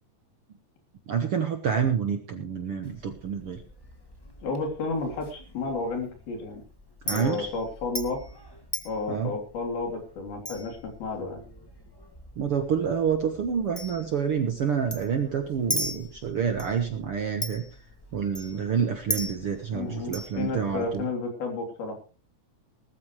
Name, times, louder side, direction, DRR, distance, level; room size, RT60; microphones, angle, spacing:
voice 1, 1.1-3.6 7.0-7.5 9.1-9.3 12.4-17.7 18.1-21.1, right 7 dB, 60° right, 6 dB, 1.5 m, -28 dB
Chink clink, 2.8-21.0, equal, 40° left, 0.3 m, -40 dB
voice 2, 4.4-6.6 7.1-8.2 8.8-11.4 19.7-22.0, left 3 dB, 85° left, 3 dB, 5.1 m, -32 dB
19.5 x 13.5 x 3.2 m, 0.35 s
omnidirectional pair, 4.2 m